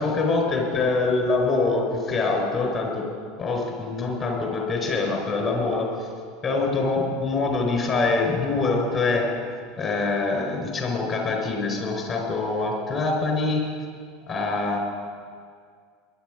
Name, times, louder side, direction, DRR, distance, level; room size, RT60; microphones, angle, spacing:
voice 1, 0.0-3.0 3.4-6.1 6.4-9.3 9.8-13.7 14.3-14.8, left 3 dB, 35° left, 1 dB, 4.7 m, -24 dB
21.5 x 11.0 x 5.0 m, 2.1 s
hypercardioid pair, 80°, 0 cm